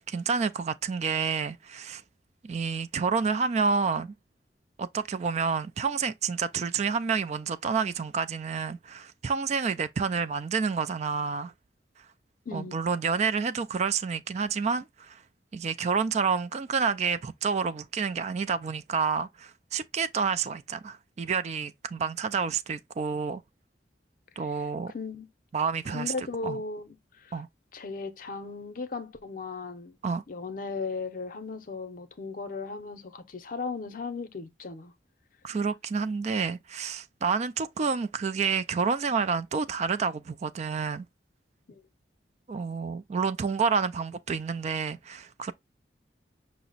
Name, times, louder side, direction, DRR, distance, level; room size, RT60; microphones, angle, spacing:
voice 1, 0.0-2.0 2.4-4.1 4.8-11.5 12.5-15.2 15.5-23.4 24.4-24.9 25.5-26.6 27.3-27.5 30.0-30.2 35.4-41.1 42.5-45.5, right 5 dB, 40° right, 0.3 m, -29 dB
voice 2, 12.5-12.8 24.9-25.3 25.9-27.0 27.2-27.3 27.7-30.0 30.3-34.9 41.7-41.8, left 4 dB, 50° left, 0.6 m, -36 dB
5.8 x 2.1 x 3.9 m
head